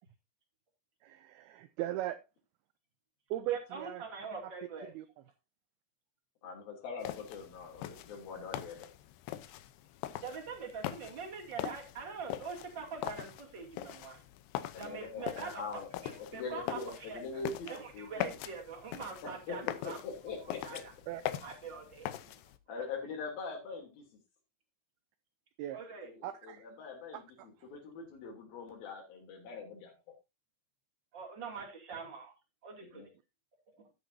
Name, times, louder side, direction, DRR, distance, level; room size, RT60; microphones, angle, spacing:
voice 1, 1.0-2.2 3.3-4.0 4.9-5.1 21.1-21.2 25.6-25.8 26.2-26.7 27.1-27.5, right 12 dB, 80° right, 2.3 m, -38 dB
voice 2, 3.5-4.9 10.2-14.2 14.8-17.4 17.7-20.0 20.6-20.8 21.4-22.1 22.7-22.8 25.7-26.1 31.1-32.3 32.6-33.0, right 5 dB, 30° right, 2.8 m, -43 dB
voice 3, 6.4-8.9 14.7-18.1 19.2-20.8 21.1-21.2 22.7-24.1 26.0-29.9 32.8-33.1, left 5 dB, 55° left, 4.7 m, -43 dB
sound 1, 7.0-22.6, left 13 dB, 75° left, 2.7 m, -42 dB
13.0 x 9.9 x 2.7 m
omnidirectional pair, 5.1 m